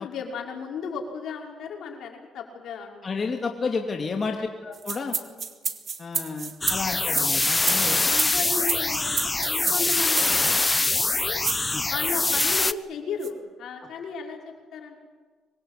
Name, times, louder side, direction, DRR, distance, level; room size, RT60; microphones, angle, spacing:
voice 1, 0.0-3.2 4.3-4.6 5.2-5.6 8.1-11.4 11.9-15.0, left 5 dB, 75° left, 1 dB, 5.5 m, -35 dB
voice 2, 3.0-5.1 6.0-8.0 11.7-11.8, left 4 dB, 40° left, 2 dB, 2.6 m, -31 dB
sound 1, 4.7-10.6 11.4-11.7 12.4-12.6 13.2-13.3, right 6 dB, 45° right, 2.2 m, -30 dB
sound 2, 6.6-12.7, left 3 dB, 20° left, 0.9 m, -24 dB
25.0 x 21.5 x 8.4 m, 1.4 s
cardioid pair, 90°, 0 cm